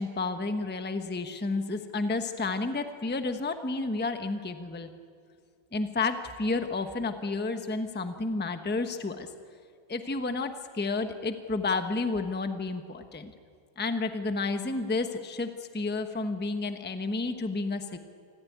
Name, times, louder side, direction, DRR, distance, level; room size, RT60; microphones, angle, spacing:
voice 1, 0.0-4.9 5.7-9.3 9.9-13.3 13.8-15.5 15.7-18.0, left 3 dB, 10° left, 8 dB, 0.6 m, -31 dB
25.5 x 15.0 x 9.4 m, 2.2 s
omnidirectional pair, 2.1 m